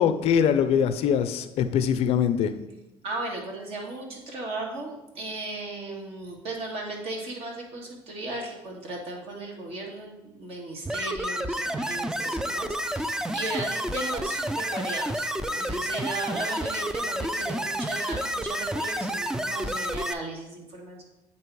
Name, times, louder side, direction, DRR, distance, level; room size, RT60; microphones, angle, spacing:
voice 1, 0.0-2.5, left 8 dB, 70° left, 11 dB, 0.5 m, -23 dB
voice 2, 3.0-21.0, right 2 dB, 65° right, -1 dB, 1.7 m, -36 dB
sound 1, 10.9-20.1, right 1 dB, 5° right, 0.4 m, -30 dB
8.3 x 2.9 x 4.6 m, 0.96 s
cardioid pair, 90°, 11 cm